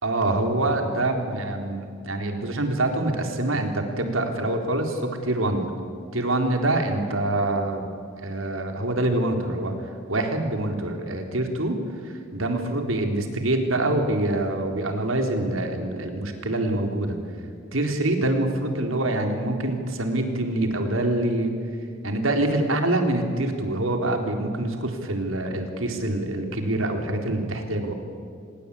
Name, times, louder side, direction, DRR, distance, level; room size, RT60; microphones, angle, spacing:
voice 1, 0.0-5.6 6.1-7.9 8.2-11.8 12.0-17.2 17.7-21.5 22.0-27.9, right 1 dB, 90° right, 4 dB, 3.8 m, -25 dB
26.5 x 21.0 x 8.5 m, 2.5 s
head